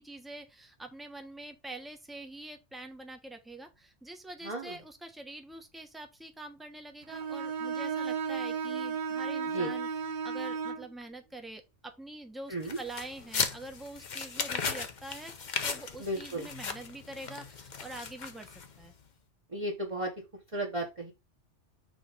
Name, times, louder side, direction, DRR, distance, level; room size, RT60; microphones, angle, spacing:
voice 1, 0.0-9.9 10.2-15.3 15.6-18.5 18.8-18.9, right 2 dB, ahead, 0.8 m, -45 dB
voice 2, 4.4-4.8 9.5-9.7 12.5-12.8 16.0-16.5 19.5-20.1 20.5-21.1, right 1 dB, 30° right, 1.1 m, -34 dB
Bowed string instrument, 7.1-10.9, right 6 dB, 50° right, 0.7 m, -34 dB
sound 1, 12.6-18.9, left 5 dB, 45° left, 0.8 m, -36 dB
6.3 x 3.0 x 5.2 m
omnidirectional pair, 1.2 m